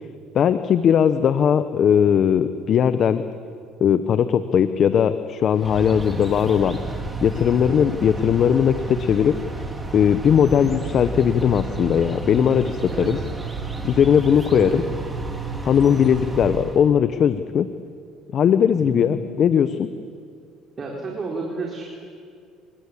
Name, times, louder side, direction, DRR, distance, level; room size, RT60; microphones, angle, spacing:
voice 1, 0.3-3.2 3.8-6.8 7.2-9.4 9.9-13.2 13.8-14.8 15.6-17.7 18.3-19.9, left 8 dB, 50° left, 11 dB, 1.0 m, -19 dB
sound 1, 5.5-16.9, right 3 dB, 10° right, 3.6 m, -31 dB
voice 2, 18.7-19.2 20.8-21.8, right 3 dB, 30° right, -1 dB, 4.5 m, -31 dB
28.5 x 19.5 x 8.6 m, 2.3 s
cardioid pair, 105°, 0 cm